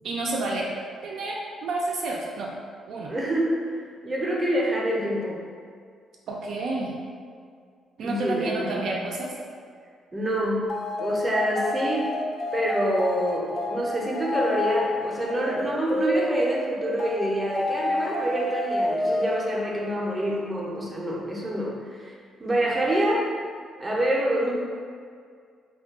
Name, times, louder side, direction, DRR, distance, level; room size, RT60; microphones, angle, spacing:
voice 1, 0.0-0.7 1.0-2.5 2.9-3.1 6.3-7.0 8.0-9.3, right 2 dB, 70° right, -2 dB, 0.3 m, -30 dB
voice 2, 3.1-5.4 8.0-8.9 10.1-10.7 11.0-12.1 12.5-23.2 23.8-24.5, right 1 dB, 20° right, -3 dB, 0.6 m, -26 dB
sound 1, 10.7-20.4, left 2 dB, 40° left, 0.3 m, -29 dB
2.3 x 2.2 x 3.5 m, 2.1 s
cardioid pair, 90°, 0 cm